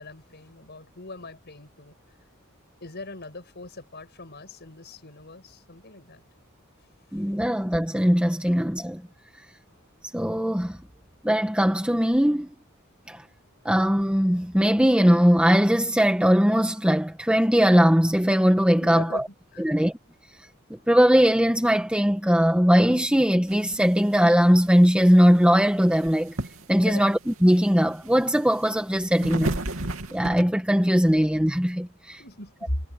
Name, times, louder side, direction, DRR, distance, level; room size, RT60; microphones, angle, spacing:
voice 1, 0.0-1.9 2.8-6.2 18.8-19.2 19.5-19.7 26.8-27.1 32.2-32.8, left 1 dB, 55° left, 6.6 m, -38 dB
voice 2, 7.1-9.0 10.1-10.8 11.2-12.5 13.1-13.2 13.7-19.2 19.6-19.9 20.7-26.4 26.7-29.6 30.1-32.2, equal, 5° right, 1.8 m, -20 dB
sound 1, 23.5-30.4, right 1 dB, 75° right, 3.0 m, -34 dB
head